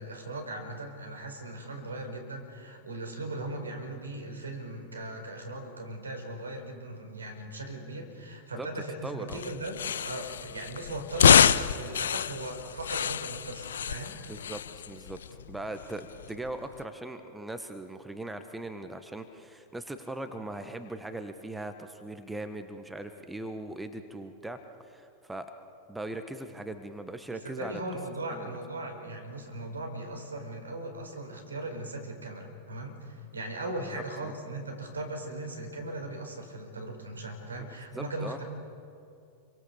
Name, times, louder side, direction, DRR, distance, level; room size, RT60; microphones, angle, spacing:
voice 1, 0.0-14.2 27.3-38.4, right 1 dB, 75° right, 4 dB, 4.6 m, -38 dB
voice 2, 9.0-9.4 14.3-14.6 14.9-15.2 15.5-25.5 25.9-27.8 28.3-28.5 33.9-34.3 37.9-38.4, right 2 dB, 5° right, 8 dB, 1.5 m, -39 dB
sound 1, 9.3-16.8, left 8 dB, 65° left, 0.6 m, -27 dB
28.5 x 23.5 x 6.9 m, 2.5 s
figure-of-eight pair, 90°, 0 cm